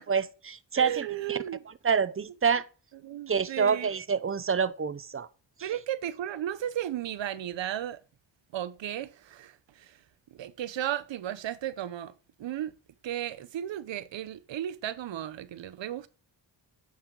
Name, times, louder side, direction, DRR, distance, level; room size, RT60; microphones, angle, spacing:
voice 1, 0.0-1.4 1.8-2.7 3.3-5.3 5.6-5.7, right 6 dB, 30° right, 0.8 m, -27 dB
voice 2, 0.7-1.6 3.0-3.9 5.6-8.0 8.5-10.0 10.3-12.1 12.4-12.7 13.0-16.1, right 11 dB, 85° right, 0.8 m, -34 dB
9.2 x 7.5 x 3.8 m
wide cardioid pair, 100°, 44 cm